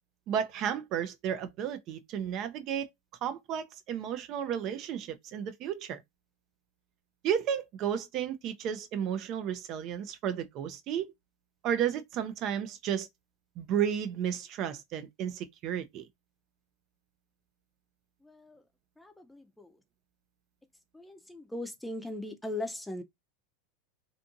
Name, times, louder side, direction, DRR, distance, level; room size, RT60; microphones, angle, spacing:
voice 1, 0.3-2.9 3.2-6.0 7.2-11.1 11.6-13.1 13.6-16.1, right 9 dB, 50° right, 0.4 m, -33 dB
voice 2, 18.2-18.6 19.0-19.8 20.9-23.0, left 2 dB, 5° left, 0.5 m, -39 dB
2.6 x 2.5 x 2.5 m
hypercardioid pair, 105°, 0 cm